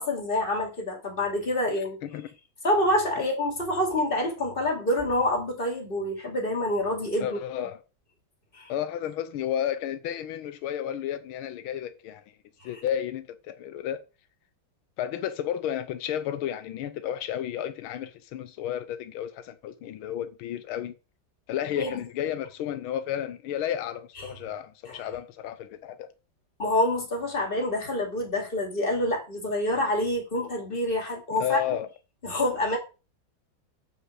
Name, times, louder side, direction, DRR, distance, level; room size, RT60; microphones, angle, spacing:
voice 1, 0.0-2.0 2.6-7.4 8.5-8.7 21.8-22.0 24.9-25.0 26.6-31.6 32.2-32.8, left 1 dB, 25° left, 2.9 m, -27 dB
voice 2, 7.2-7.8 8.7-12.4 12.6-14.0 15.0-20.9 21.5-26.1 31.4-31.9, left 10 dB, 90° left, 1.6 m, -32 dB
7.5 x 5.5 x 6.3 m
omnidirectional pair, 2.2 m